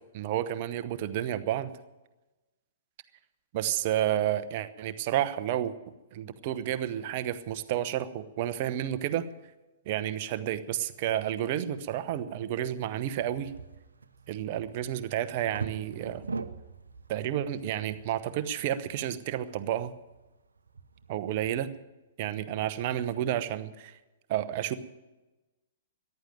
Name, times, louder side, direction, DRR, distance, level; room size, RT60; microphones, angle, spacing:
voice 1, 0.1-1.8 3.5-5.7 6.1-9.3 9.9-13.5 14.3-16.2 17.1-19.9 21.1-21.7 22.2-23.9 24.3-24.7, right 11 dB, 45° right, 12 dB, 1.0 m, -31 dB
sound 1, 13.2-21.8, right 4 dB, 75° right, 0.9 m, -44 dB
14.5 x 11.0 x 9.0 m, 1.1 s
figure-of-eight pair, 115°, 0 cm